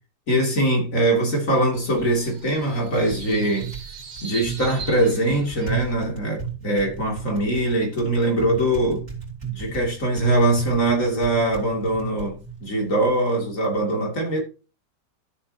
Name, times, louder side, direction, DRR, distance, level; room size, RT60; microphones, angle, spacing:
voice 1, 0.3-3.7 4.2-9.0 9.5-14.4, right 1 dB, 50° left, 3.0 m, -22 dB
Typing, 1.3-13.8, right 6 dB, 40° right, 3.1 m, -35 dB
sound 1, 1.9-5.9, right 5 dB, 90° right, 2.2 m, -40 dB
13.0 x 7.2 x 2.8 m
omnidirectional pair, 1.8 m